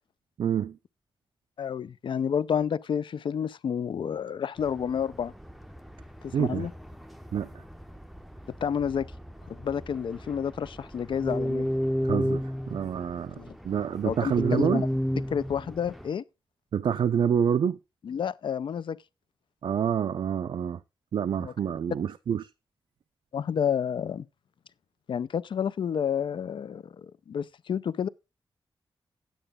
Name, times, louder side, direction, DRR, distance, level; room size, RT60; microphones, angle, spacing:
voice 1, 0.4-0.7 6.3-6.7 7.3-7.5 12.0-12.4 12.7-13.3 13.6-14.8 16.7-17.8 19.6-20.8 21.1-22.5, right 8 dB, 75° right, 0.4 m, -27 dB
voice 2, 1.6-5.3 6.2-6.7 8.6-9.1 9.6-11.7 13.4-13.6 14.0-14.9 15.3-16.2 18.0-19.0 21.4-21.5 23.3-24.2 25.1-28.1, left 7 dB, 70° left, 0.5 m, -30 dB
sound 1, 4.6-16.1, equal, ahead, 0.6 m, -34 dB
10.0 x 8.9 x 3.6 m
wide cardioid pair, 160°, 9 cm